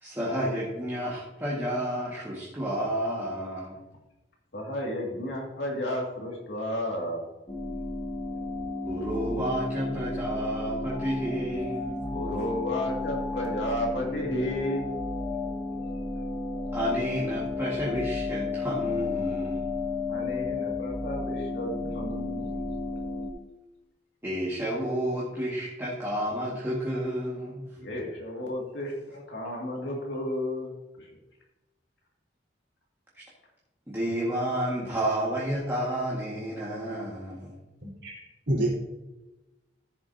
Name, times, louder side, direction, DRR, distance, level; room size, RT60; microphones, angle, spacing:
voice 1, 0.0-3.8 8.8-12.1 16.7-19.7 24.2-27.7 33.1-33.2 33.9-37.5, right 1 dB, 15° right, -6 dB, 1.8 m, -31 dB
voice 2, 4.5-7.2 12.1-14.9 20.1-22.8 27.8-31.1, left 1 dB, 80° left, -2 dB, 2.3 m, -32 dB
sound 1, 7.5-23.3, left 3 dB, 20° left, 1.1 m, -33 dB
voice 3, 37.8-38.7, right 1 dB, 80° right, -4 dB, 3.6 m, -29 dB
14.5 x 7.2 x 2.8 m, 1.0 s
head